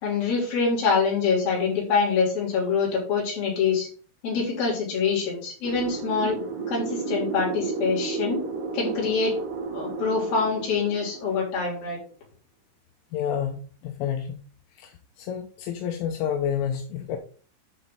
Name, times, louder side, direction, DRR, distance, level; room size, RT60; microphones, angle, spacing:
voice 1, 0.0-3.9 4.2-6.4 6.7-8.4 8.7-9.3 9.7-12.0, left 5 dB, 50° left, -3 dB, 5.2 m, -25 dB
sound 1, 5.6-11.8, right 5 dB, 65° right, 4.0 m, -32 dB
voice 2, 13.1-14.4 14.8-14.9 15.2-17.2, left 8 dB, 80° left, 4 dB, 3.4 m, -29 dB
11.5 x 4.5 x 4.0 m, 0.40 s
omnidirectional pair, 5.7 m